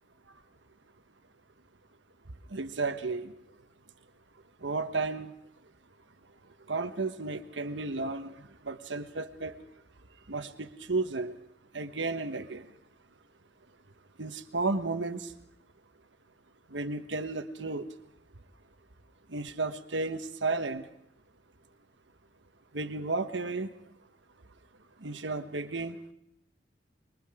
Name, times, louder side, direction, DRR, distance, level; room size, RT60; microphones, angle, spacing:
voice 1, 2.5-3.3 4.6-5.3 6.7-8.4 8.6-9.5 10.3-11.4 11.7-12.7 14.2-15.3 16.7-17.9 19.3-20.9 22.7-23.7 25.0-26.0, right 3 dB, 85° right, 8 dB, 1.3 m, -33 dB
26.0 x 23.0 x 5.0 m, 0.77 s
head